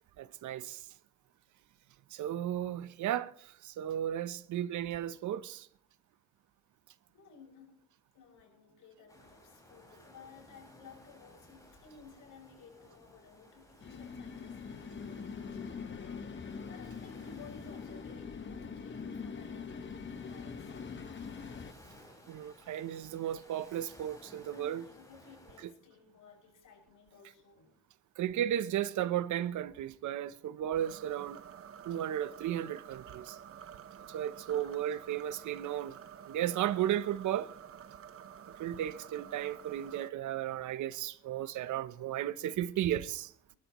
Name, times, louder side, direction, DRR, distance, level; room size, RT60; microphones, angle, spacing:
voice 1, 0.2-0.8 2.1-5.7 22.3-24.8 28.2-31.4 31.8-33.4 34.1-36.0 36.3-37.5 38.6-43.3, right 11 dB, 75° right, 0.9 m, -34 dB
voice 2, 7.1-7.8 8.1-16.4 16.7-20.7 24.5-27.7 34.5-35.0 43.5-43.6, left 6 dB, 80° left, 6.6 m, -57 dB
sound 1, 9.1-25.6, left 1 dB, 10° left, 6.6 m, -58 dB
sound 2, 13.8-21.7, left 5 dB, 40° left, 1.4 m, -43 dB
sound 3, 30.7-40.1, right 8 dB, 50° right, 1.0 m, -50 dB
27.5 x 12.0 x 3.1 m
cardioid pair, 90°, 30 cm